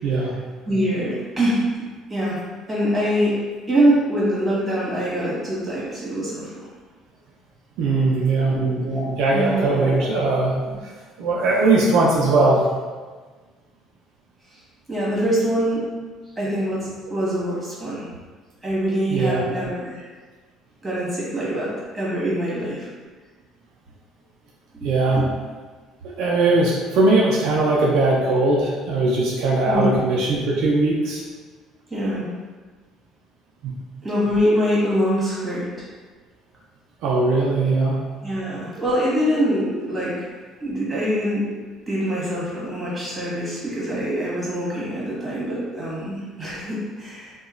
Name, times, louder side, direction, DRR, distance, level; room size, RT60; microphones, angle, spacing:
voice 1, 0.6-1.7 2.1-2.4 2.7-3.4 3.7-6.5 8.4-9.9 10.7-10.8 14.9-15.9 16.3-18.0 18.6-20.0 20.8-22.9 24.7-24.9 25.2-25.3 29.7-30.0 31.9-32.3 34.0-35.9 38.2-40.3 40.6-41.6 41.8-47.3, equal, 15° right, -8 dB, 1.4 m, -24 dB
voice 2, 7.8-8.6 9.2-10.5 11.2-12.7 19.1-19.4 24.8-25.2 26.0-31.2 33.6-33.7 37.0-38.0, right 2 dB, 75° right, -3 dB, 0.4 m, -19 dB
2.8 x 2.2 x 2.4 m, 1.4 s
supercardioid pair, 85°, 0 cm